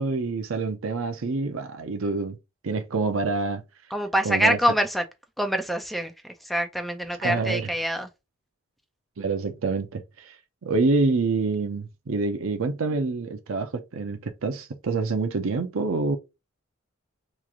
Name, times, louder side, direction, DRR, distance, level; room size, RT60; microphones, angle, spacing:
voice 1, 0.0-2.4 2.6-3.6 4.2-4.6 7.2-7.7 9.2-10.4 10.6-16.2, right 3 dB, 70° right, 0.6 m, -26 dB
voice 2, 3.9-5.0 5.4-8.1, equal, ahead, 0.4 m, -25 dB
3.0 x 2.5 x 3.5 m
head